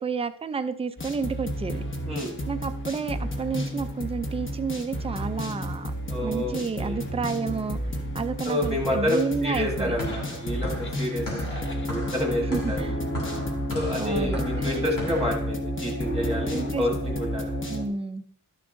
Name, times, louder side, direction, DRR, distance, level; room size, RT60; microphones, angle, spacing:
voice 1, 0.0-1.9 2.5-5.9 6.2-7.8 8.1-10.0 12.5-13.0 14.0-14.4 16.5-16.8 17.7-18.2, right 5 dB, 20° right, 9 dB, 0.4 m, -30 dB
sound 1, 1.0-17.9, equal, 40° left, 1.2 m, -31 dB
voice 2, 6.1-7.0 8.4-12.8 13.7-17.6, left 1 dB, ahead, 0 dB, 1.3 m, -29 dB
sound 2, 9.7-15.5, left 2 dB, 90° left, 2.9 m, -38 dB
12.0 x 6.8 x 2.6 m, 0.63 s
wide cardioid pair, 135°, 32 cm